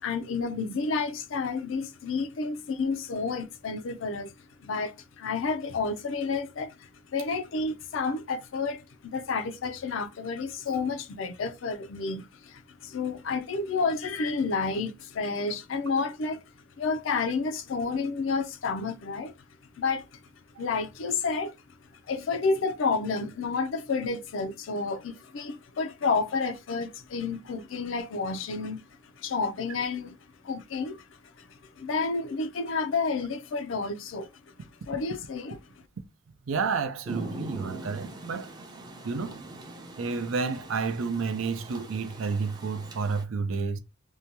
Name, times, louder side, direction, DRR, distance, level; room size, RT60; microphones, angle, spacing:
voice 1, 0.0-4.3 4.6-16.4 16.8-19.3 19.8-20.2 20.6-21.5 22.1-28.8 29.2-30.2 30.4-34.5 34.9-35.6, left 4 dB, 70° left, 0.4 m, -30 dB
voice 2, 36.5-38.5 39.0-39.4 40.0-43.8, right 4 dB, 80° right, 0.5 m, -30 dB
Rain, 37.1-43.2, right 2 dB, 20° right, 0.4 m, -42 dB
2.7 x 2.2 x 2.9 m
head